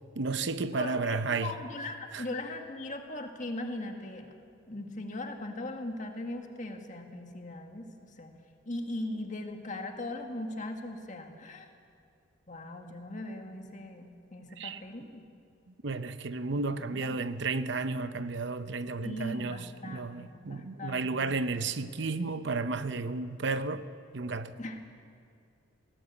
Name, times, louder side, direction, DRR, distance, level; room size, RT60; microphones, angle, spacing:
voice 1, 0.2-1.5 2.1-2.2 14.6-14.8 15.8-23.9 24.1-24.5, right 3 dB, 60° right, 0.7 m, -32 dB
voice 2, 0.7-4.3 4.7-8.3 8.7-11.7 12.5-15.3 16.5-17.2 19.0-21.8 24.6-24.8, left 1 dB, 35° left, 1.9 m, -39 dB
20.0 x 18.5 x 8.3 m
head